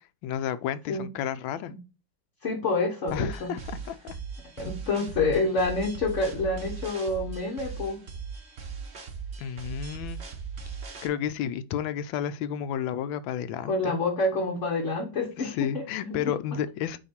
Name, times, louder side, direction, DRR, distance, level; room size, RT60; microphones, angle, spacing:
voice 1, 0.2-1.7 3.1-4.2 9.4-10.2 11.0-13.9 15.4-17.0, left 9 dB, 80° left, 1.4 m, -31 dB
voice 2, 2.4-3.5 4.6-8.0 13.6-16.6, left 3 dB, 45° left, 1.1 m, -28 dB
sound 1, 3.1-11.1, right 6 dB, 40° right, 1.1 m, -39 dB
9.1 x 3.1 x 4.3 m
omnidirectional pair, 2.1 m